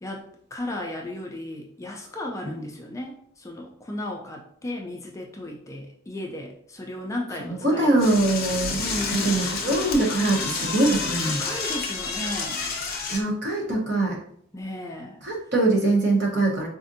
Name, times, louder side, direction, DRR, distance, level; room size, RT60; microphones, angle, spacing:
voice 1, 0.0-8.1 8.8-9.6 11.2-12.6 14.5-15.2, left 1 dB, 15° left, 0 dB, 0.3 m, -35 dB
voice 2, 7.4-8.8 9.2-11.4 13.1-14.2 15.2-16.7, right 2 dB, 55° right, -2 dB, 0.9 m, -23 dB
Door / Toilet flush, 8.0-13.2, left 4 dB, 50° left, 0.6 m, -29 dB
4.1 x 2.5 x 2.6 m, 0.63 s
head